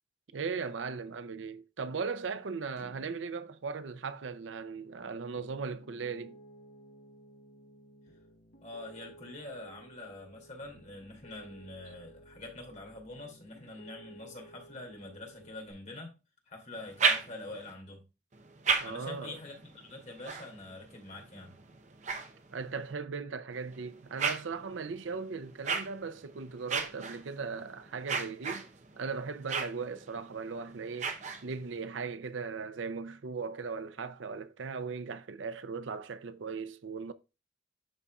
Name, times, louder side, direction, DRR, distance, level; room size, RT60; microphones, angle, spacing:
voice 1, 0.3-6.4 18.8-19.4 22.5-28.7 29.0-31.1 31.4-37.1, right 5 dB, 85° right, 0.6 m, -38 dB
sound 1, 2.8-5.3, left 1 dB, 65° right, 4.2 m, -59 dB
Piano, 5.3-15.7, right 1 dB, 65° left, 1.2 m, -55 dB
voice 2, 8.6-16.1 16.5-18.0 18.8-21.5, left 2 dB, 40° left, 2.5 m, -45 dB
sound 2, 16.7-17.7 18.3-22.9 23.5-31.8, right 5 dB, 40° right, 0.7 m, -36 dB
12.0 x 4.2 x 2.4 m
head